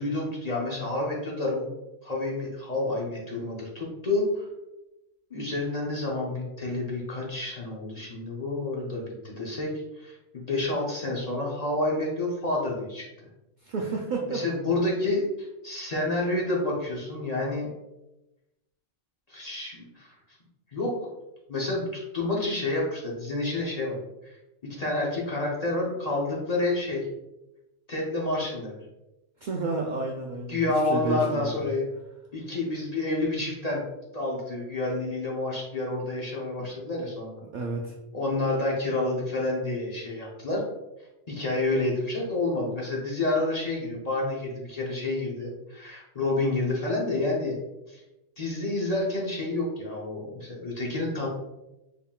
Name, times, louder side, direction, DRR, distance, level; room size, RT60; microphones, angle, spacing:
voice 1, 0.0-1.8 2.0-4.4 5.3-9.7 10.0-13.0 14.3-17.7 19.3-20.1 20.7-21.1 21.5-24.4 24.6-27.1 27.9-28.8 30.5-31.8 32.3-33.8 34.1-37.4 38.1-40.6 41.3-47.6 47.9-48.0 48.4-51.3, left 2 dB, 40° left, -3 dB, 0.6 m, -29 dB
voice 2, 13.6-14.4 29.4-31.7 36.6-36.7 37.5-37.9, right 3 dB, 80° right, 0 dB, 0.4 m, -31 dB
3.6 x 3.6 x 2.3 m, 0.97 s
omnidirectional pair, 1.3 m